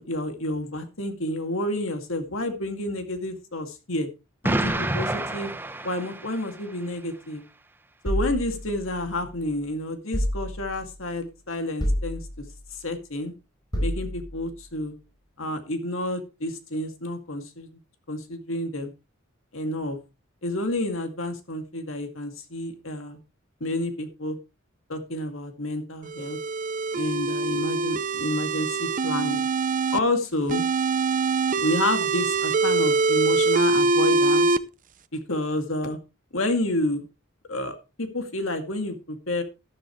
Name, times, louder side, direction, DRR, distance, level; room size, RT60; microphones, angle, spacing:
voice 1, 0.0-4.1 4.4-5.5 5.8-7.4 8.0-12.3 12.7-13.3 13.8-14.9 15.4-17.7 18.1-18.9 19.5-20.0 20.4-23.2 23.6-24.4 24.9-26.4 26.9-29.4 29.9-30.7 31.6-34.5 35.1-36.0 36.3-37.1 37.5-39.4, left 1 dB, 70° left, 6 dB, 2.3 m, -29 dB
Explosion, 4.4-6.6, right 1 dB, 10° right, 0.8 m, -28 dB
sound 1, 8.0-9.4 10.1-11.0 11.8-12.7 13.7-14.5, equal, 20° left, 4.5 m, -29 dB
sound 2, 26.1-30.0 30.5-34.6, right 3 dB, 40° right, 0.6 m, -23 dB
12.0 x 12.0 x 3.1 m, 0.29 s
head